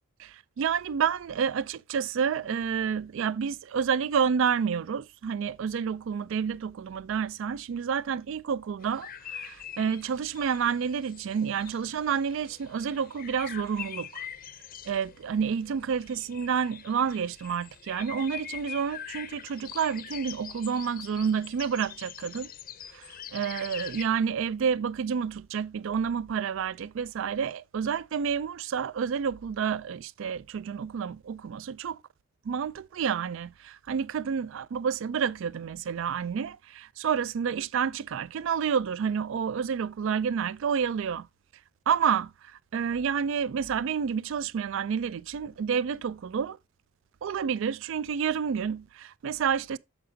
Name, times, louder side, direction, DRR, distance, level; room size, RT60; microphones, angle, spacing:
voice 1, 0.2-14.2 14.8-22.5 22.9-32.0 32.4-41.3 41.9-46.6 47.2-49.8, right 7 dB, 60° right, 0.3 m, -29 dB
sound 1, 8.8-24.0, left 9 dB, 40° left, 0.6 m, -44 dB
8.7 x 6.9 x 2.6 m
head